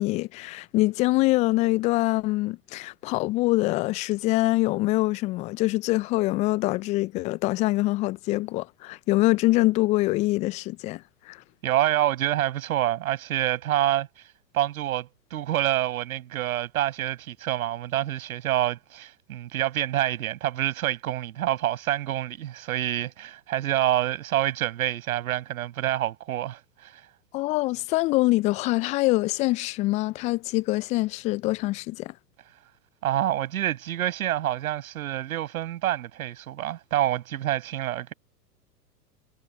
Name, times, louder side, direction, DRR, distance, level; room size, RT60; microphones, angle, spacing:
voice 1, 0.0-11.4 27.3-32.1, left 20 dB, 15° left, 0.5 m, -24 dB
voice 2, 11.6-14.1 14.5-26.9 33.0-38.1, right 13 dB, 60° right, 6.7 m, -27 dB
figure-of-eight pair, 105°, 49 cm